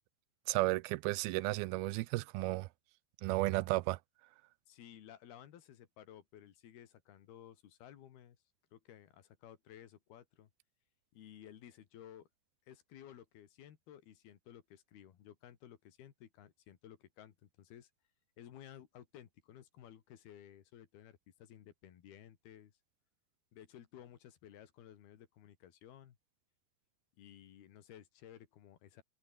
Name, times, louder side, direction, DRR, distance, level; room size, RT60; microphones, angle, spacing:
voice 1, 0.5-2.7 3.2-4.0, right 20 dB, 85° right, 2.5 m, -33 dB
voice 2, 4.7-8.4 8.7-10.5 11.1-12.3 12.7-17.9 18.4-22.7 23.5-26.2 27.2-29.0, left 10 dB, 85° left, 4.0 m, -56 dB
omnidirectional pair, 4.4 m